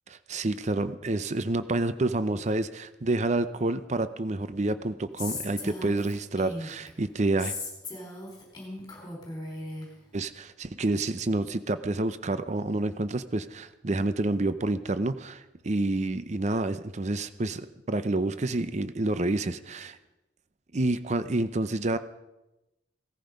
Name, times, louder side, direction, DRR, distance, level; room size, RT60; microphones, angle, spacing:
voice 1, 0.1-7.5 10.1-20.0 20.7-22.0, right 2 dB, 40° right, 12 dB, 0.6 m, -28 dB
Female speech woman speaking, 5.2-6.9 7.4-9.9, left 2 dB, 20° left, 4.5 m, -37 dB
17.5 x 14.0 x 5.2 m, 0.98 s
head